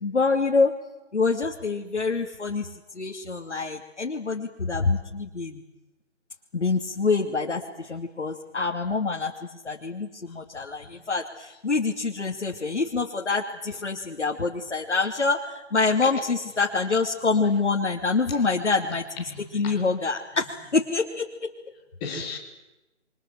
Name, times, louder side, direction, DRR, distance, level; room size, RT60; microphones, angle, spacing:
voice 1, 0.0-0.7 1.1-2.7 2.9-5.6 6.5-7.6 7.9-9.3 9.6-21.5, left 4 dB, 70° left, 2.8 m, -26 dB
voice 2, 19.3-19.8 22.0-22.4, left 4 dB, 10° left, 2.9 m, -36 dB
28.0 x 23.5 x 7.5 m
figure-of-eight pair, 165°, 36 cm